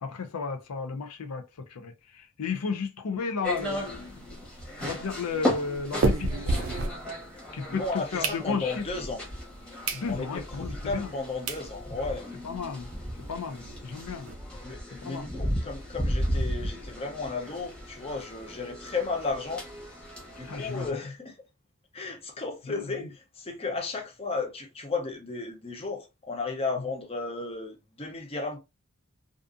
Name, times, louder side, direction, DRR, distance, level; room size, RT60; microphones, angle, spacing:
voice 1, 0.0-4.4 4.8-6.5 7.5-7.8 8.1-8.8 9.9-11.1 12.4-12.9 13.3-14.3 15.0-15.3 20.4-20.9 22.7-23.1, left 5 dB, 90° left, 0.5 m, -33 dB
sound 1, 3.4-20.9, equal, 5° left, 1.0 m, -35 dB
sound 2, 3.6-7.6 8.0-8.9 9.4-9.5 9.8-10.1 10.5-10.6 11.2-11.3 11.5-11.7 12.1-12.2 12.4-12.5 12.8-12.9 13.2-14.3, right 3 dB, 55° right, 0.5 m, -32 dB
voice 2, 7.6-9.2 10.1-12.3 14.6-19.6 20.4-21.4 21.9-28.6, left 3 dB, 25° left, 0.6 m, -34 dB
2.5 x 2.4 x 2.5 m
head